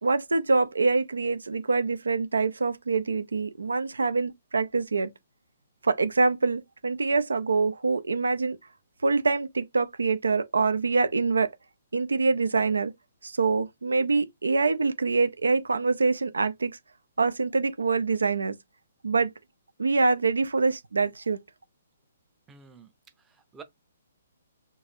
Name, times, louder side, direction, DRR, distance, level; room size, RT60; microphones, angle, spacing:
voice 1, 0.0-5.1 5.8-8.6 9.0-11.5 11.9-12.9 13.2-16.7 17.2-18.6 19.0-19.3 19.8-21.4, right 4 dB, 90° right, 0.5 m, -25 dB
voice 2, 22.5-22.9 23.2-23.6, right 5 dB, 15° right, 0.6 m, -49 dB
4.6 x 2.6 x 2.6 m
hypercardioid pair, 140°, 0 cm